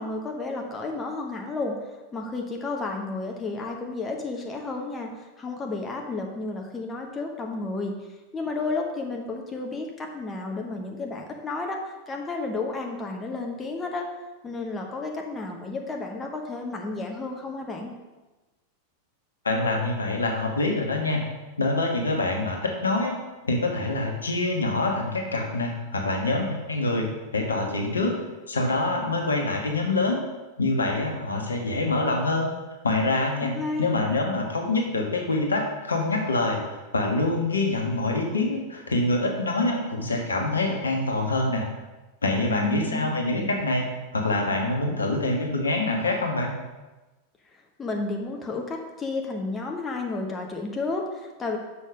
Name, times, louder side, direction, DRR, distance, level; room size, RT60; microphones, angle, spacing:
voice 1, 0.0-1.8 2.1-7.9 8.3-14.1 14.4-17.9 33.4-34.0 42.5-43.1 43.3-43.6 47.8-51.6, left 3 dB, 20° left, 1 dB, 1.0 m, -32 dB
voice 2, 19.4-21.2 21.6-23.2 23.4-27.1 27.3-28.2 28.5-30.2 30.6-32.5 32.8-41.7 42.2-43.8 44.1-46.5, left 2 dB, 75° left, 2 dB, 1.2 m, -25 dB
6.5 x 5.2 x 5.0 m, 1.1 s
figure-of-eight pair, 90°, 0 cm